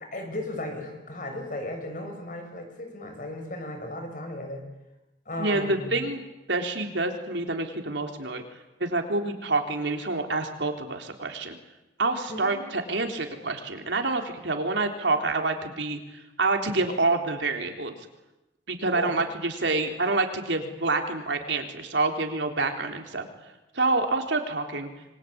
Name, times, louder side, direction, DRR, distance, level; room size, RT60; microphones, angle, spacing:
voice 1, 0.1-4.7 5.3-6.0 12.3-12.6 18.9-19.2, left 1 dB, 50° left, 5 dB, 7.0 m, -35 dB
voice 2, 5.4-6.2 6.5-8.4 8.8-11.5 12.0-18.0 18.7-23.3 23.7-24.9, right 3 dB, 80° right, 4 dB, 3.8 m, -27 dB
27.0 x 24.5 x 8.8 m, 1.0 s
head